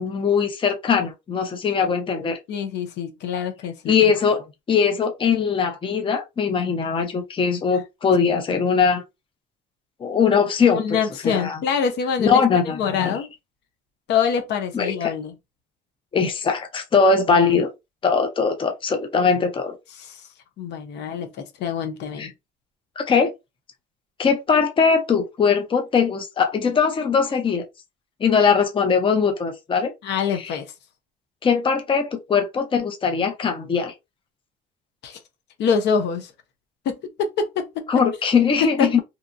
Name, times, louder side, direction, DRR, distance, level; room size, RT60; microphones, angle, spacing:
voice 1, 0.0-2.4 3.9-9.0 10.0-11.0 11.2-11.6 12.2-13.2 14.7-14.9 16.1-17.7 18.0-19.8 22.2-22.3 23.0-23.3 24.2-27.6 28.2-29.9 30.3-30.6 31.4-33.9 37.9-39.0, left 5 dB, 30° left, 0.6 m, -21 dB
voice 2, 2.5-4.1 10.7-13.3 14.1-15.3 19.9-20.2 20.6-22.3 30.0-30.7 35.0-35.2 35.6-36.3 36.8-37.8 38.6-38.9, left 6 dB, 70° left, 0.7 m, -25 dB
2.8 x 2.3 x 2.5 m
cardioid pair, 95°, 19 cm